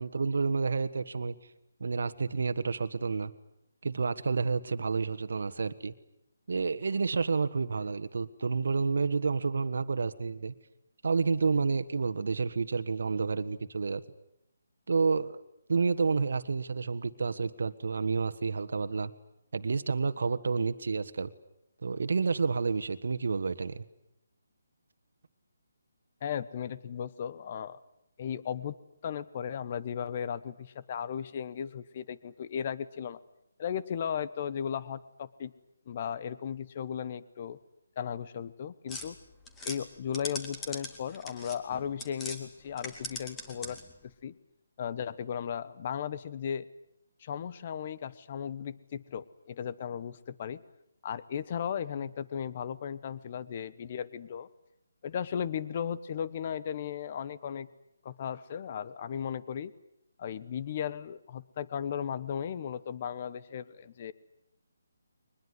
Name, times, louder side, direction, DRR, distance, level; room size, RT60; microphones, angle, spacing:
voice 1, 0.0-1.3 1.8-3.3 3.8-5.9 6.5-10.5 11.0-14.0 14.9-15.4 15.7-19.1 19.5-21.3 21.8-23.8, right 4 dB, 65° right, 11 dB, 1.5 m, -29 dB
voice 2, 26.2-27.8 28.2-28.8 29.0-33.2 33.6-35.5 35.9-37.6 38.0-39.1 39.6-43.8 44.0-44.4 44.8-46.7 47.2-50.6 51.0-54.5 55.0-57.7 58.0-59.7 60.2-64.1, left 8 dB, 35° left, 16 dB, 1.2 m, -36 dB
sound 1, 38.9-42.4 42.7-44.0, left 2 dB, 10° left, 2.4 m, -41 dB
22.5 x 21.0 x 9.7 m, 0.81 s
hypercardioid pair, 160°, 0 cm